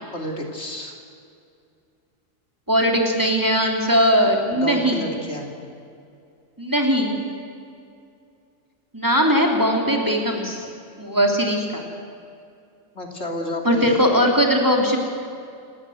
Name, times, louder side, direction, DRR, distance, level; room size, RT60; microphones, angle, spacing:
voice 1, 0.1-1.0 4.5-5.5 12.9-14.0, left 1 dB, 55° left, 2 dB, 3.1 m, -30 dB
voice 2, 2.7-5.0 6.6-7.1 8.9-10.6 11.0-11.8 13.6-15.0, equal, 15° right, 1 dB, 3.2 m, -19 dB
28.5 x 18.0 x 8.0 m, 2.5 s
omnidirectional pair, 1.4 m